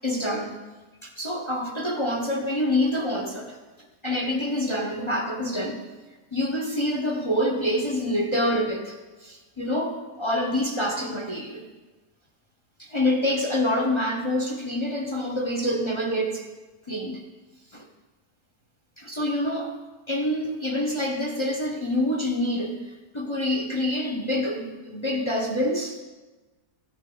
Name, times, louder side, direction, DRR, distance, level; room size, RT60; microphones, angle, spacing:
voice 1, 0.0-0.5 1.0-3.6 4.0-5.8 6.3-11.7 12.8-16.4 16.9-17.2 17.7-17.8 19.0-19.8 20.1-22.8 23.1-26.0, left 1 dB, 25° left, 1 dB, 0.6 m, -26 dB
13.0 x 8.8 x 3.9 m, 1.2 s
omnidirectional pair, 1.8 m